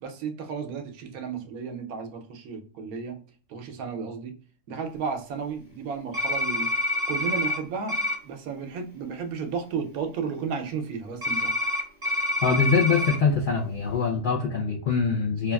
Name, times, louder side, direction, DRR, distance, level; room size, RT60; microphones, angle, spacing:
voice 1, 0.0-3.2 3.5-4.4 4.7-6.7 7.1-8.0 8.2-11.5, right 6 dB, 85° right, 5 dB, 1.1 m, -33 dB
sound 1, 6.1-7.6 7.9-8.1 11.2-13.2, left 1 dB, 30° right, 1.1 m, -27 dB
voice 2, 12.4-15.5, left 5 dB, 85° left, -1 dB, 0.4 m, -24 dB
3.1 x 2.3 x 2.2 m, 0.40 s
omnidirectional pair, 1.5 m